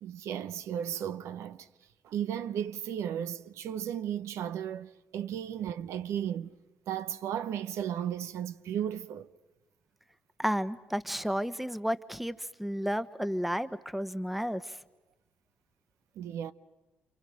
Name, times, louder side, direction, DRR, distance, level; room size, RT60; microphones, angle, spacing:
voice 1, 0.0-1.7 2.0-6.5 6.9-9.3 16.2-16.5, right 9 dB, 70° right, 0.8 m, -35 dB
voice 2, 10.4-14.8, equal, ahead, 1.2 m, -32 dB
28.5 x 28.5 x 6.4 m
supercardioid pair, 60°, 5 cm